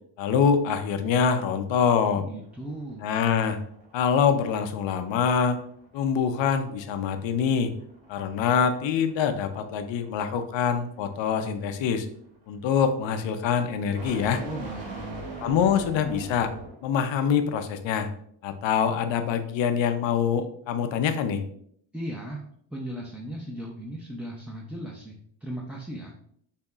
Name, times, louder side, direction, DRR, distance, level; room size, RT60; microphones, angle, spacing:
voice 1, 0.2-2.2 3.0-3.6 3.9-5.6 5.9-7.7 8.1-12.1 12.5-14.4 15.4-16.5 16.8-18.1 18.4-21.4, left 7 dB, 75° left, 8 dB, 0.7 m, -25 dB
voice 2, 2.1-3.1 14.4-15.3 21.9-22.4 22.7-25.2 25.4-26.1, right 1 dB, 5° right, -3 dB, 0.6 m, -37 dB
sound 1, 2.4-17.0, right 2 dB, 70° right, 1.7 m, -44 dB
6.7 x 2.9 x 2.4 m, 0.66 s
cardioid pair, 100°, 46 cm